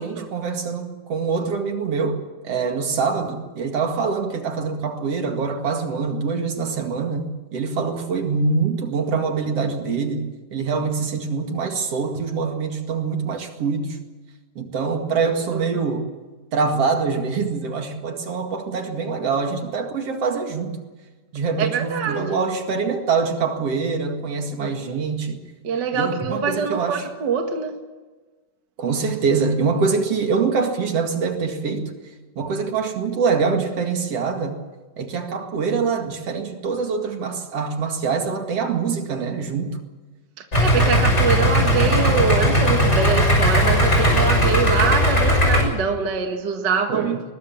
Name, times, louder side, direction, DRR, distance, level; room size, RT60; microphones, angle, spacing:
voice 1, 0.0-14.0 14.6-16.1 16.5-20.8 21.3-25.4 25.9-27.0 28.8-32.0 32.4-34.6 35.0-39.8 46.9-47.2, right 5 dB, 55° right, 3.0 m, -24 dB
voice 2, 21.6-22.3 24.6-24.7 25.6-27.8 40.4-47.1, right 6 dB, 40° right, 2.0 m, -24 dB
Idling, 40.5-45.6, equal, 20° left, 6.4 m, -18 dB
21.0 x 21.0 x 7.3 m
omnidirectional pair, 3.4 m